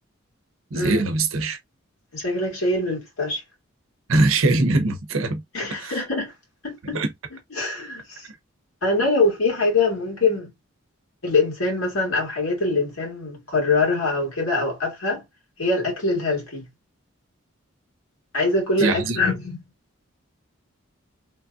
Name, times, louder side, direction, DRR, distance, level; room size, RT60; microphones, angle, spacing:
voice 1, 0.7-1.6 4.1-5.4 5.8-6.0 6.9-7.1 18.8-19.2, right 2 dB, 80° right, 0.7 m, -21 dB
voice 2, 2.1-3.4 5.5-6.3 6.6-7.0 7.5-8.3 8.8-10.5 11.2-15.2 15.6-16.7 18.3-19.6, left 3 dB, 85° left, 1.7 m, -23 dB
3.2 x 2.4 x 2.5 m
head